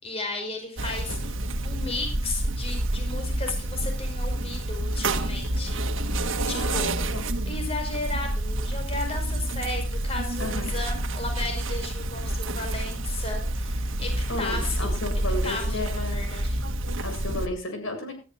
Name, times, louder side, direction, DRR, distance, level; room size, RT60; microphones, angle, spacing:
voice 1, 0.0-7.0 7.5-14.1 14.4-15.0 15.4-16.6, left 3 dB, 30° left, 4 dB, 5.4 m, -35 dB
sound 1, 0.8-17.5, right 1 dB, 75° right, 1.7 m, -28 dB
voice 2, 6.4-7.2 10.4-10.7 14.3-16.3 17.0-18.1, left 1 dB, 90° left, 5 dB, 7.8 m, -33 dB
20.5 x 13.5 x 2.6 m, 0.31 s
head